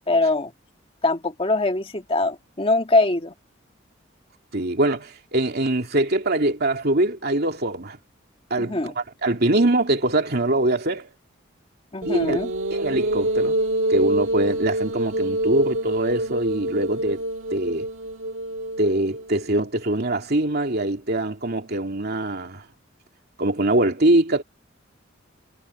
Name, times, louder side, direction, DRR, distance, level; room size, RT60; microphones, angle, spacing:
voice 1, 0.1-0.5 1.0-3.3 8.6-8.9 11.9-12.5, left 2 dB, 30° left, 1.8 m, -22 dB
voice 2, 4.5-8.0 8.5-11.1 12.0-12.4 12.7-13.6 13.9-17.2 17.5-17.9 18.8-22.6 23.4-24.4, right 1 dB, 50° right, 2.7 m, -23 dB
sound 1, 12.0-19.4, right 1 dB, 85° right, 1.6 m, -26 dB
head